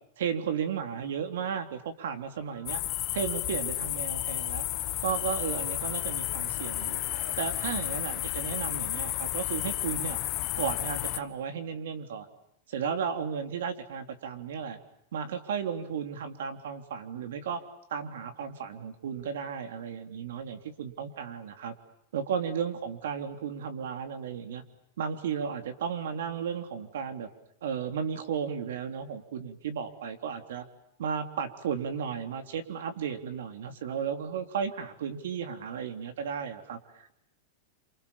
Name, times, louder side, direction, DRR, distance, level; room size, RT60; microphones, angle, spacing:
voice 1, 0.2-2.8 3.1-4.7 5.0-7.0 7.4-10.2 10.6-12.3 12.7-14.8 15.1-17.6 17.9-21.7 22.1-24.6 25.0-27.3 27.6-30.7 31.0-37.1, right 7 dB, 80° right, 7 dB, 3.6 m, -34 dB
sound 1, 2.2-7.4, right 5 dB, 65° right, 5.9 m, -53 dB
sound 2, 2.7-11.2, left 16 dB, 25° left, 1.2 m, -32 dB
29.5 x 27.5 x 7.3 m, 0.75 s
supercardioid pair, 180°, 0 cm